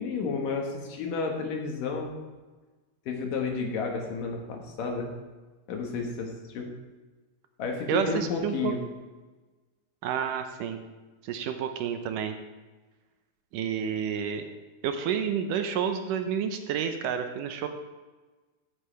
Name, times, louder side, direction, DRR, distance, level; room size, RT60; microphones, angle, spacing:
voice 1, 0.0-2.1 3.1-5.1 5.7-6.7 7.6-8.8, left 4 dB, 75° left, 2 dB, 3.1 m, -31 dB
voice 2, 7.9-8.7 10.0-10.8 11.2-12.4 13.5-14.4 14.8-17.7, right 7 dB, 75° right, 7 dB, 2.3 m, -29 dB
14.5 x 10.0 x 3.4 m, 1.3 s
omnidirectional pair, 4.0 m